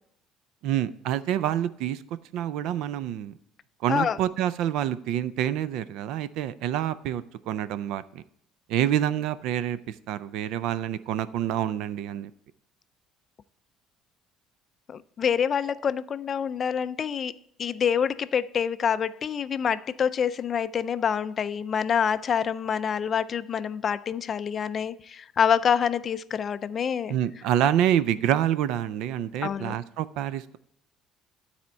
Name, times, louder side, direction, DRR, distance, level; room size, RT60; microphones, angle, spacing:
voice 1, 0.6-2.0 2.3-3.3 3.8-8.2 8.7-12.3 27.1-30.6, right 11 dB, 75° right, 16 dB, 0.4 m, -27 dB
voice 2, 14.9-17.3 17.6-27.2 29.4-29.8, left 7 dB, 35° left, 15 dB, 0.3 m, -26 dB
12.0 x 4.3 x 4.4 m, 0.75 s
cardioid pair, 130°, 0 cm